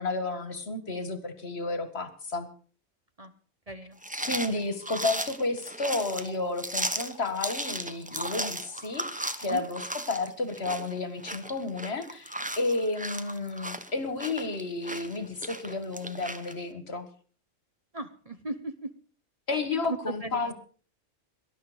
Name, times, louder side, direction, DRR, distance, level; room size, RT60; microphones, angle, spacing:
voice 1, 0.0-2.5 4.3-17.1 19.5-20.5, left 3 dB, 55° left, 10 dB, 2.0 m, -32 dB
voice 2, 3.7-4.0 9.4-9.6 17.9-18.7 19.9-20.5, right 2 dB, 30° right, 9 dB, 1.0 m, -37 dB
sound 1, 4.0-16.5, right 1 dB, 5° right, 0.9 m, -36 dB
19.5 x 11.5 x 5.1 m, 0.43 s
omnidirectional pair, 1.3 m